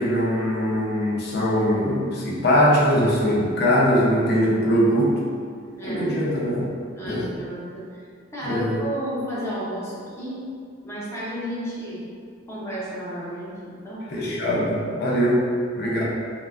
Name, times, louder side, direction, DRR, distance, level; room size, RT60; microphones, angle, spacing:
voice 1, 0.0-5.2 5.8-6.6 7.0-7.3 8.4-8.8 14.1-16.0, equal, 50° left, -5 dB, 0.5 m, -21 dB
voice 2, 5.7-6.1 6.9-7.8 8.3-10.4 10.8-12.0 12.5-14.0 15.8-16.0, equal, 15° left, -9 dB, 0.6 m, -32 dB
3.1 x 2.1 x 2.3 m, 2.2 s
head